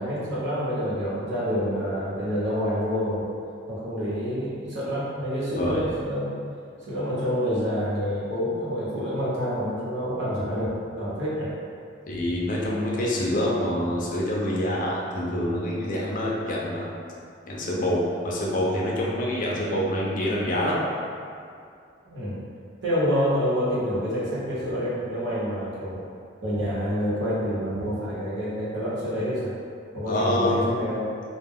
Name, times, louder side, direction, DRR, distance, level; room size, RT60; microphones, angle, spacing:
voice 1, 0.0-3.3 3.7-6.3 6.9-11.5 22.1-22.4 22.8-26.0 26.4-29.5 29.9-31.0, equal, 65° right, -9 dB, 0.9 m, -27 dB
voice 2, 12.1-16.9 17.5-20.7 30.1-30.7, left 1 dB, 45° left, -4 dB, 0.5 m, -26 dB
2.2 x 2.2 x 3.4 m, 2.4 s
head